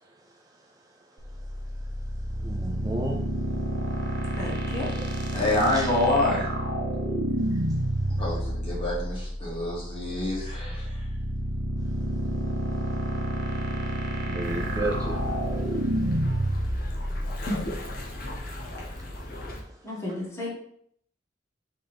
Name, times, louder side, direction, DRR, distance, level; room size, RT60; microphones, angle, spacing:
sound 1, 1.2-18.4, right 1 dB, 60° right, 0.8 m, -29 dB
voice 1, 2.4-3.3 5.0-5.1 5.7-5.9 7.5-7.8 10.2-10.5 14.2-15.3 17.4-17.5 18.9-19.1 20.1-20.2, right 2 dB, 20° right, 0 dB, 0.4 m, -34 dB
voice 2, 4.3-4.9 19.8-20.5, left 2 dB, 15° left, -4 dB, 1.1 m, -33 dB
voice 3, 5.3-6.5 8.2-11.1, left 2 dB, 30° left, -6 dB, 1.8 m, -27 dB
sound 2, 14.4-19.6, left 1 dB, 50° left, 0.9 m, -35 dB
4.2 x 3.3 x 3.5 m, 0.67 s
head